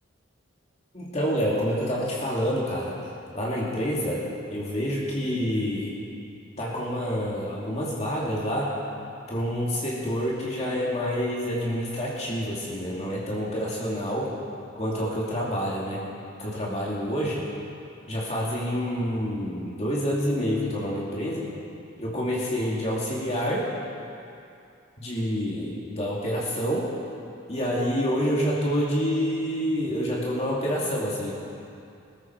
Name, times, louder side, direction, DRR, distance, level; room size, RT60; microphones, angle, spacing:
voice 1, 0.9-2.9 3.3-4.2 4.5-6.0 6.6-8.8 9.3-14.3 14.7-16.0 16.4-17.4 18.1-21.5 22.0-23.7 25.0-26.9 27.5-31.3, equal, 35° left, -5 dB, 2.6 m, -27 dB
22.0 x 14.0 x 4.7 m, 2.5 s
head